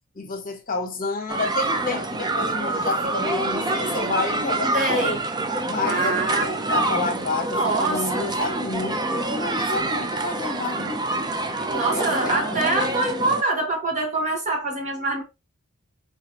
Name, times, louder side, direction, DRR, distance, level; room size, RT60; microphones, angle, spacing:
voice 1, 0.1-5.2 5.6-11.2 11.7-12.6, left 4 dB, 40° left, 1.1 m, -30 dB
sound 1, 1.3-13.4, right 2 dB, 20° right, 0.5 m, -26 dB
voice 2, 4.7-5.2 5.8-6.8 7.4-8.4 11.7-15.2, right 2 dB, 35° right, 1.4 m, -25 dB
4.9 x 3.4 x 2.9 m
head